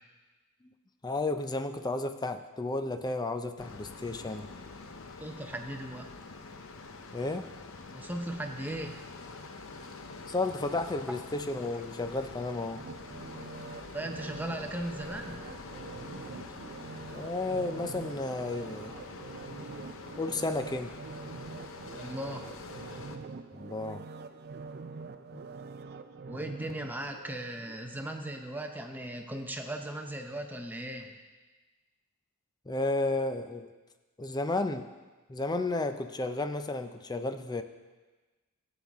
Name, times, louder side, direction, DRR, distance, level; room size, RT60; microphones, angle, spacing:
voice 1, 1.0-4.5 7.1-7.5 10.3-12.9 17.1-18.9 20.2-21.0 23.5-24.0 32.7-33.7 34.2-34.9 35.3-37.6, left 2 dB, 20° left, 8 dB, 0.5 m, -32 dB
sound 1, 3.6-23.2, left 3 dB, 65° left, 0.8 m, -46 dB
voice 2, 5.2-6.1 7.9-9.0 13.8-15.5 22.0-22.5 26.3-31.1, right 1 dB, 10° right, 3 dB, 0.8 m, -38 dB
sound 2, 12.8-27.8 28.2-28.3, right 4 dB, 45° right, 0.4 m, -45 dB
15.0 x 7.9 x 3.6 m, 1.2 s
head